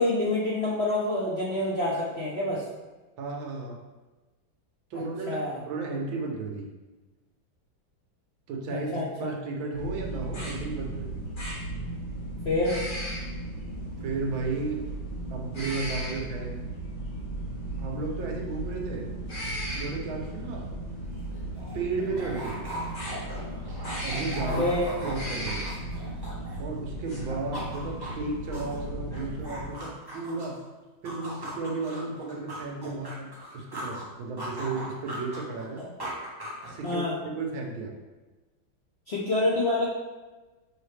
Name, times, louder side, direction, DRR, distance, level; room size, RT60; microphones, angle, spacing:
voice 1, 0.0-2.6 5.3-5.6 8.7-9.3 12.4-12.8 24.4-25.0 36.8-37.2 39.1-39.9, left 2 dB, 55° left, -6 dB, 0.7 m, -27 dB
voice 2, 3.2-3.8 4.9-6.7 8.5-11.2 14.0-14.8 15.3-16.6 17.8-19.1 19.7-20.8 21.7-22.6 24.0-24.7 25.0-25.7 26.6-30.6 31.0-35.9 36.7-37.9, right 3 dB, 80° right, 1 dB, 1.7 m, -34 dB
sound 1, 9.7-29.7, right 1 dB, 25° left, 1.5 m, -36 dB
sound 2, 21.0-21.1 21.3-26.8 27.1-30.6 31.0-34.1 34.4-37.1, equal, 15° right, 1.0 m, -39 dB
6.1 x 4.9 x 3.3 m, 1.2 s
omnidirectional pair, 2.1 m